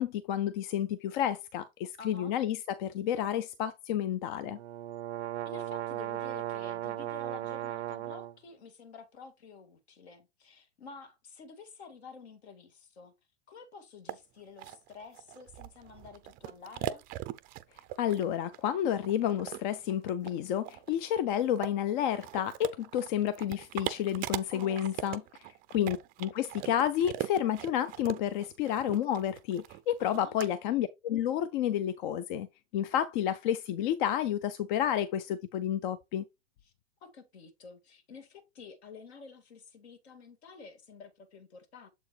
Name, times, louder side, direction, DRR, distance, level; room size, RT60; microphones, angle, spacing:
voice 1, 0.0-4.6 18.0-25.2 25.7-32.5 32.7-36.2, left 10 dB, 45° left, 0.6 m, -30 dB
voice 2, 2.0-2.4 5.5-13.2 13.5-17.0 24.5-25.2 30.0-30.3 36.6-36.7 37.0-41.9, left 5 dB, 65° left, 1.8 m, -50 dB
sound 1, 4.4-8.3, right 13 dB, 75° right, 0.5 m, -36 dB
sound 2, 14.1-14.2 14.6-30.5, right 14 dB, 25° right, 0.5 m, -40 dB
7.3 x 4.5 x 3.2 m
hypercardioid pair, 110°, 34 cm